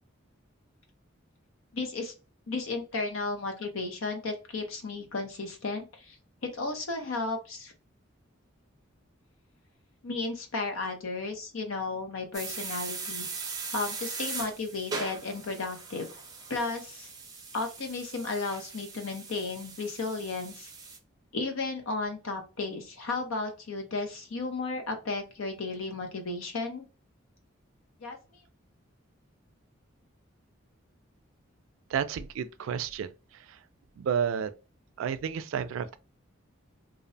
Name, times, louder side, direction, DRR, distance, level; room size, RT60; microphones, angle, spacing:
voice 1, 1.7-2.1 2.5-6.2 6.4-7.7 10.0-13.3 13.7-16.1 16.5-17.1 17.5-20.7 21.3-26.8 28.0-28.2, left 3 dB, 90° left, 0.7 m, -34 dB
sound 1, 12.3-21.0, right 4 dB, 20° right, 0.5 m, -40 dB
voice 2, 31.9-33.1 34.0-34.5 35.0-36.0, right 7 dB, 85° right, 0.3 m, -30 dB
2.5 x 2.1 x 2.6 m
head